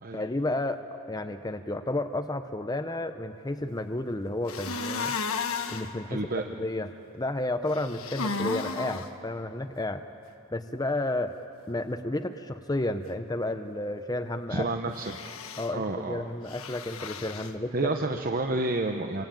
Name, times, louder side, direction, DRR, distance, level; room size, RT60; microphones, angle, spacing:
voice 1, 0.1-5.1 5.7-6.9 7.1-10.0 10.5-11.3 11.7-14.7 15.6-18.0, left 1 dB, 15° left, 7 dB, 0.7 m, -32 dB
sound 1, 4.5-5.9 7.7-9.1 14.9-15.7 16.5-17.5, left 4 dB, 65° left, 1.3 m, -33 dB
voice 2, 6.1-6.4 14.5-15.2 15.7-16.3 17.7-19.3, right 2 dB, 40° right, 5 dB, 0.9 m, -29 dB
26.5 x 24.0 x 9.2 m, 2.8 s
head